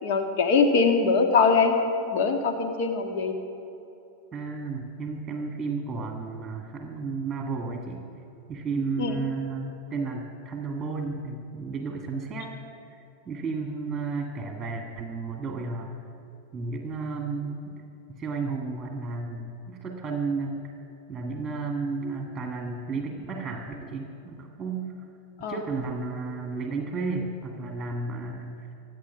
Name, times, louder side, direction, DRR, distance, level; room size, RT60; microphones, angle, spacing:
voice 1, 0.0-1.7 2.1-3.3 9.0-9.2 25.4-25.6, left 5 dB, 50° left, 5 dB, 2.0 m, -22 dB
voice 2, 4.3-8.1 8.5-12.6 12.9-13.0 13.3-15.9 16.5-17.8 18.1-20.7 21.1-24.9 25.5-28.6, right 4 dB, 20° right, 3 dB, 1.9 m, -32 dB
25.5 x 8.6 x 6.0 m, 2.9 s
figure-of-eight pair, 90°, 0 cm